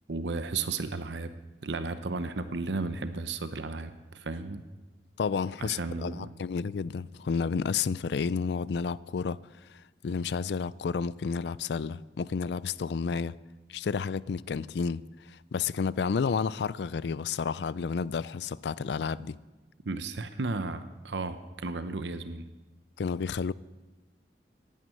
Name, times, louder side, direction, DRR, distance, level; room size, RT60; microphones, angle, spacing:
voice 1, 0.1-1.3 1.6-4.6 5.6-6.3 19.8-22.4, right 3 dB, 80° right, 0.8 m, -34 dB
voice 2, 5.2-13.4 13.7-19.4 23.0-23.5, left 5 dB, 70° left, 0.4 m, -31 dB
11.0 x 9.2 x 9.0 m
head